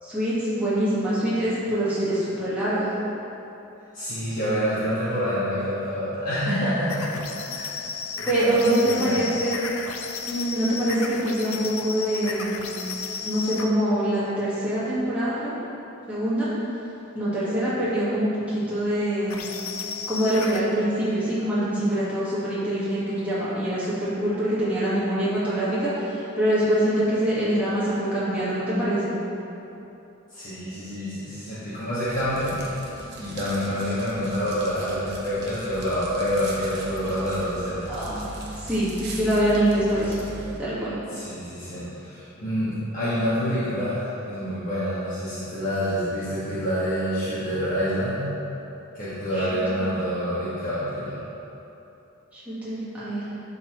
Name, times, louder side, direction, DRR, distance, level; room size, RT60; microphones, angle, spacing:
voice 1, 0.0-2.9 8.3-9.6 10.3-12.7 13.2-15.5 16.1-16.5 17.1-19.4 20.1-29.1 37.9-38.2 38.6-40.2 40.6-41.0 49.3-49.8 52.3-53.4, right 1 dB, 5° right, -12 dB, 1.4 m, -24 dB
voice 2, 3.9-7.1 7.4-7.8 8.1-9.3 30.3-32.6 33.2-37.8 41.1-48.3 48.9-51.2, equal, 40° left, -13 dB, 1.4 m, -27 dB
sound 1, 6.9-13.7 19.3-20.7, left 5 dB, 90° left, 0.5 m, -34 dB
sound 2, 32.0-40.6, right 1 dB, 50° right, 0.9 m, -39 dB
11.0 x 4.2 x 3.0 m, 2.9 s
head